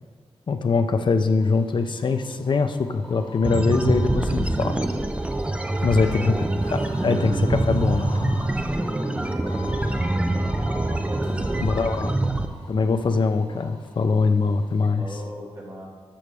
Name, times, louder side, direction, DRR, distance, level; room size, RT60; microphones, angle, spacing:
voice 1, 0.5-4.8 5.8-6.4 6.7-8.3 11.6-12.2 12.7-15.1, left 4 dB, 50° left, 8 dB, 0.5 m, -23 dB
sound 1, 1.3-14.9, left 4 dB, 10° left, 2.4 m, -46 dB
sound 2, 3.4-12.5, right 2 dB, 10° right, 0.4 m, -25 dB
voice 2, 5.6-6.4 8.7-12.1 15.0-15.9, right 1 dB, 30° right, -5 dB, 2.2 m, -39 dB
sound 3, 6.6-8.8, left 1 dB, 85° left, 3.1 m, -42 dB
13.0 x 6.1 x 3.4 m, 1.4 s
wide cardioid pair, 170°, 11 cm